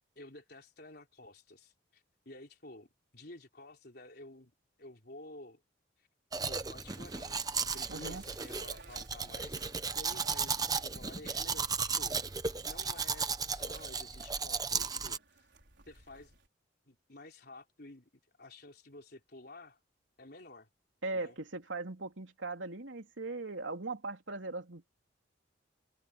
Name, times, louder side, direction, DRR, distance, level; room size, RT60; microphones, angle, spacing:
voice 1, 0.2-4.5 4.8-5.6 6.0-6.1 6.5-12.2 12.6-15.5 15.9-16.4 16.9-18.1 18.4-19.8 20.2-20.7 21.1-21.4, left 2 dB, 55° left, 4.0 m, -52 dB
Domestic sounds home sounds, 6.3-15.2, right 5 dB, 20° right, 1.0 m, -35 dB
sound 1, 6.8-16.5, right 3 dB, 65° right, 5.7 m, -58 dB
voice 2, 7.9-8.2 21.0-24.9, right 3 dB, 90° right, 3.3 m, -39 dB
head